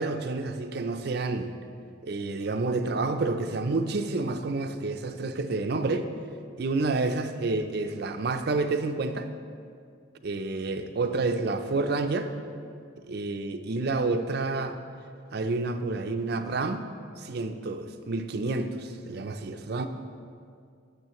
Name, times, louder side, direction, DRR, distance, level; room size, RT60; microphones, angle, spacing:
voice 1, 0.0-1.5 2.0-6.1 6.6-9.3 10.2-12.3 13.0-14.8 15.3-16.9 17.2-19.9, right 3 dB, 55° right, 7 dB, 0.5 m, -29 dB
12.0 x 6.9 x 3.0 m, 2.3 s
head